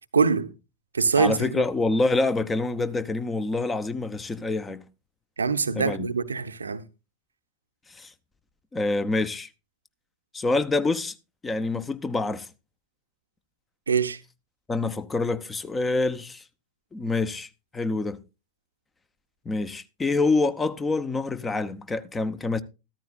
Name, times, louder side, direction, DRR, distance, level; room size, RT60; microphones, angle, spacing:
voice 1, 0.1-0.5 0.9-1.5 5.4-6.8 13.9-14.2, right 5 dB, 75° right, 0.8 m, -23 dB
voice 2, 1.2-4.8 5.7-6.1 7.9-8.1 8.7-9.5 10.3-11.1 11.4-12.5 14.7-16.4 16.9-18.2 19.4-22.6, left 3 dB, 15° left, 1.0 m, -26 dB
14.0 x 13.5 x 2.5 m
figure-of-eight pair, 90°, 0 cm